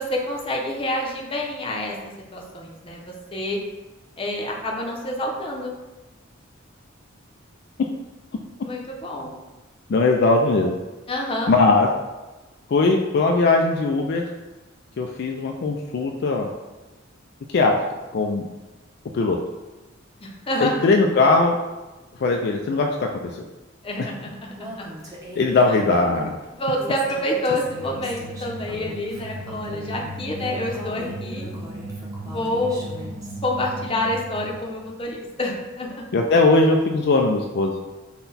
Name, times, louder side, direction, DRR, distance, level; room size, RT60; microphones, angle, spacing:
voice 1, 0.0-2.0 2.3-3.6 4.2-5.7 8.6-9.4 11.1-11.5 20.2-20.8 23.8-24.9 26.5-31.5 32.2-32.9 33.4-35.9, left 1 dB, 30° left, 0 dB, 0.7 m, -28 dB
voice 2, 9.9-10.7 11.5-11.9 12.7-14.3 15.0-16.5 17.5-17.7 18.1-18.4 19.1-19.4 20.6-21.6 22.2-23.4 24.0-24.1 25.4-26.4 36.1-37.7, left 3 dB, 55° left, 2 dB, 0.4 m, -19 dB
Female speech woman speaking, 24.6-33.4, equal, 15° right, 0.8 m, -40 dB
sound 1, 27.5-34.9, right 2 dB, 65° right, 0.6 m, -36 dB
5.6 x 2.2 x 4.0 m, 1.1 s
head